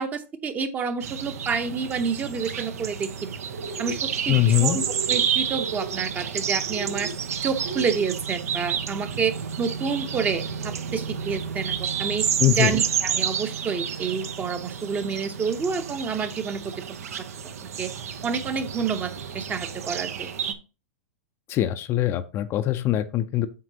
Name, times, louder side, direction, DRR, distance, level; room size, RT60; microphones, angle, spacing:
voice 1, 0.0-3.3 3.8-7.1 7.4-16.7 17.8-17.9 18.2-20.3, right 5 dB, 20° right, 0.7 m, -29 dB
sound 1, 1.0-20.5, right 7 dB, 80° right, 0.8 m, -30 dB
sound 2, 3.5-4.0 4.7-5.2 5.5-6.0 6.7-7.1 7.6-8.2, right 5 dB, 65° right, 1.4 m, -35 dB
voice 2, 4.3-4.8 12.4-12.7 21.5-23.5, left 13 dB, 30° left, 0.5 m, -22 dB
7.6 x 5.9 x 2.8 m
hypercardioid pair, 135°, 8 cm